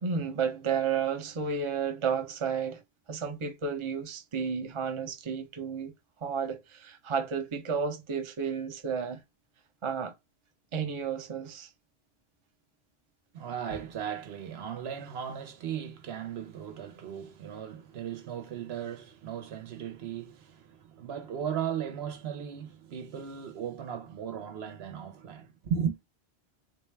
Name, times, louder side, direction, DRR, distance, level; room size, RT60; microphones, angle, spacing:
voice 1, 0.0-2.8 3.1-5.9 6.2-9.2 9.8-10.1 10.7-11.7, right 6 dB, 35° right, 0.6 m, -32 dB
voice 2, 13.3-26.0, right 8 dB, 80° right, 1.0 m, -36 dB
3.8 x 2.2 x 3.2 m
omnidirectional pair, 1.1 m